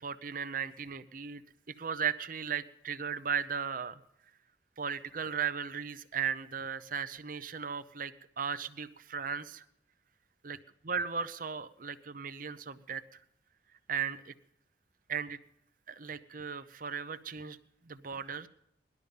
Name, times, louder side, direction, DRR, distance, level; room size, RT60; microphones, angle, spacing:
voice 1, 0.0-1.4 1.8-4.0 4.8-9.6 10.4-10.6 10.8-13.2 13.9-14.3 15.1-15.4 15.9-17.6 17.8-18.5, right 6 dB, 45° right, 12 dB, 0.7 m, -36 dB
19.0 x 12.0 x 5.4 m, 0.76 s
head